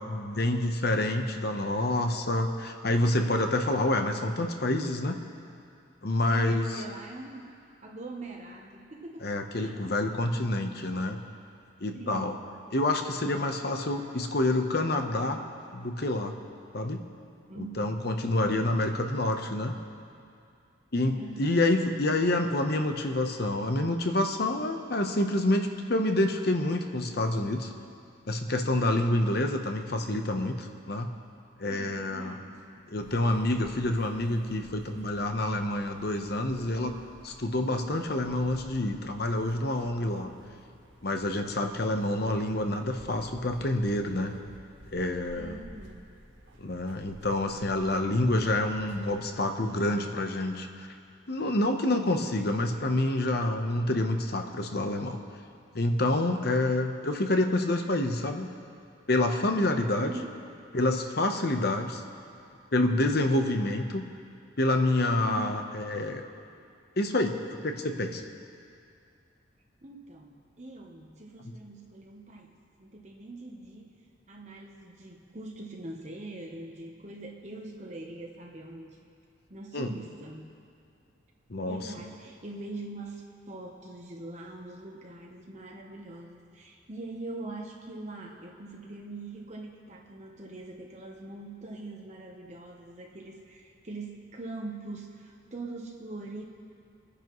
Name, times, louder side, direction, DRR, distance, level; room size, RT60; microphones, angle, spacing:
voice 1, 0.0-5.2 6.0-6.7 9.2-11.2 11.8-12.3 12.7-15.4 15.7-16.3 16.7-17.0 17.6-19.8 20.9-27.7 28.3-31.1 31.6-32.4 32.9-36.9 37.2-40.3 41.0-44.3 44.9-45.6 46.6-50.9 51.3-55.2 55.7-58.5 59.1-60.1 60.7-62.0 62.7-64.1 64.6-66.2 67.0-68.2 71.4-71.5 79.7-79.9 81.5-81.9, left 1 dB, 55° left, 5 dB, 0.9 m, -27 dB
voice 2, 6.3-7.5 7.8-9.8 11.9-12.4 17.5-18.0 21.1-21.6 28.7-29.1 31.7-32.8 41.6-41.9 45.3-46.1 52.7-53.0 60.0-60.4 65.2-65.7 69.8-72.5 72.8-74.0 74.3-79.0 79.5-80.5 81.7-96.4, right 2 dB, 35° right, 0 dB, 1.0 m, -42 dB
sound 1, 33.0-49.3, right 1 dB, 75° right, 1.8 m, -52 dB
28.5 x 10.0 x 3.1 m, 2.4 s
head